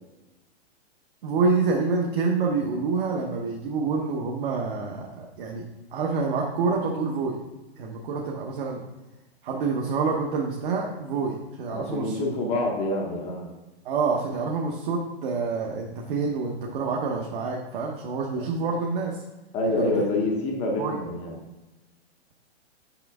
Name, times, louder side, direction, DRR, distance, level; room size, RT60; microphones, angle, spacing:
voice 1, 1.2-5.6 5.9-7.4 7.8-8.8 9.4-12.3 13.8-19.2 19.8-19.9 20.8-21.0, right 4 dB, 55° right, -1 dB, 0.9 m, -27 dB
voice 2, 11.7-13.5 19.5-21.3, left 2 dB, 20° left, 1 dB, 0.6 m, -27 dB
5.8 x 5.1 x 3.5 m, 1.1 s
hypercardioid pair, 150°, 32 cm